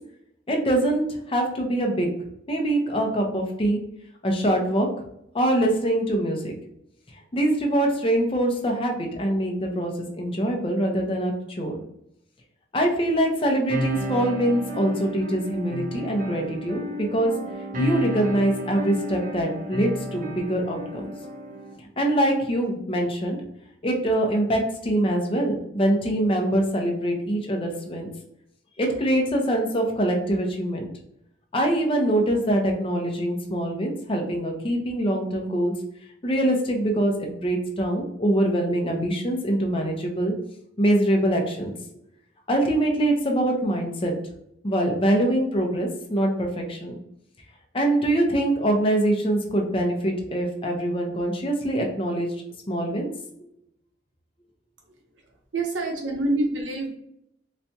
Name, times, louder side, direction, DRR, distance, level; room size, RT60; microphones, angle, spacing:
voice 1, 0.5-1.0 1.3-2.1 2.5-3.8 4.2-4.9 5.3-6.5 7.3-11.8 12.7-17.3 17.8-21.1 22.0-23.4 23.8-28.1 28.8-30.9 31.5-35.7 36.2-40.3 40.8-41.7 42.5-44.1 44.6-47.0 47.7-52.3 52.7-53.1, right 1 dB, 30° left, 2 dB, 0.6 m, -24 dB
sound 1, 13.7-21.7, equal, 45° right, 0.6 m, -32 dB
voice 2, 55.5-56.9, right 2 dB, 75° right, 1 dB, 0.9 m, -26 dB
4.1 x 2.2 x 2.7 m, 0.76 s
head